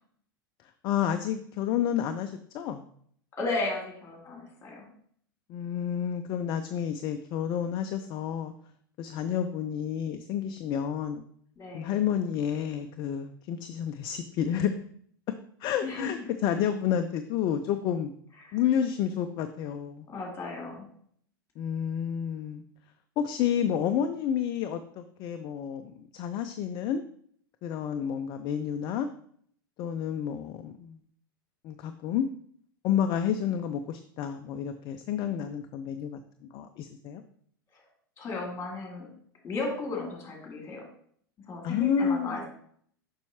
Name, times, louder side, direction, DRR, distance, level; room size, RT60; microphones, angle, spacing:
voice 1, 0.8-2.9 5.5-8.5 9.0-11.2 11.7-14.7 15.6-18.1 18.5-20.1 21.6-22.6 23.2-27.0 27.6-29.1 29.8-31.0 31.6-32.3 32.8-36.2 36.5-37.2 41.6-42.5, left 9 dB, 35° left, 8 dB, 0.4 m, -30 dB
voice 2, 3.3-4.9 11.6-12.0 15.8-16.1 18.4-18.6 20.1-20.8 37.7-37.8 38.2-39.1 39.4-40.8 41.5-42.5, left 3 dB, 20° left, 0 dB, 2.2 m, -35 dB
6.9 x 5.5 x 2.9 m, 0.62 s
figure-of-eight pair, 90°, 12 cm